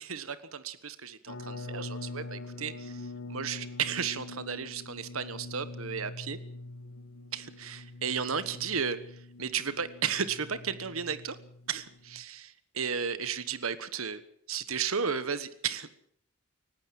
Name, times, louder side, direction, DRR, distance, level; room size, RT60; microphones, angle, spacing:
voice 1, 0.0-6.4 7.3-9.0 9.4-11.4 11.7-14.2 14.5-15.9, right 6 dB, 75° right, 14 dB, 1.4 m, -34 dB
sound 1, 1.3-12.2, left 2 dB, 75° left, 2.0 m, -44 dB
20.0 x 17.5 x 7.6 m, 0.64 s
head